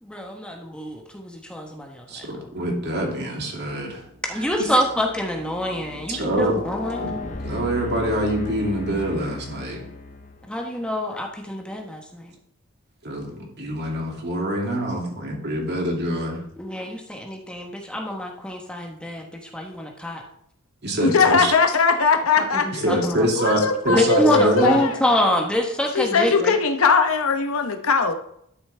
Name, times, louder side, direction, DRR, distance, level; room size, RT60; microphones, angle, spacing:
voice 1, 0.0-2.2 4.3-7.0 10.5-12.3 16.6-20.2 22.4-23.3 23.9-26.5, equal, 5° left, 1 dB, 1.2 m, -26 dB
voice 2, 2.1-4.0 4.3-4.7 6.1-6.6 7.0-7.1 7.4-9.8 13.0-16.4 20.8-21.5 22.8-24.8, right 1 dB, 50° right, 0 dB, 2.5 m, -25 dB
sound 1, 4.0-10.5, left 3 dB, 40° left, 0.9 m, -36 dB
voice 3, 21.0-22.8 23.4-25.0 25.9-28.1, left 5 dB, 80° left, 6 dB, 1.0 m, -20 dB
12.0 x 6.8 x 3.4 m, 0.71 s
head